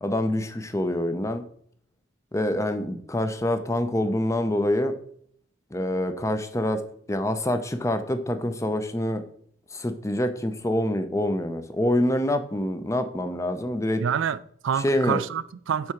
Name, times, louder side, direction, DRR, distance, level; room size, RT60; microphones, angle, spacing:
voice 1, 0.0-1.4 2.3-5.0 5.7-6.8 7.1-9.2 9.7-14.0 14.8-15.2, left 1 dB, 15° left, 0.6 m, -26 dB
voice 2, 14.0-15.9, right 7 dB, 75° right, 0.3 m, -27 dB
7.7 x 4.7 x 5.7 m
head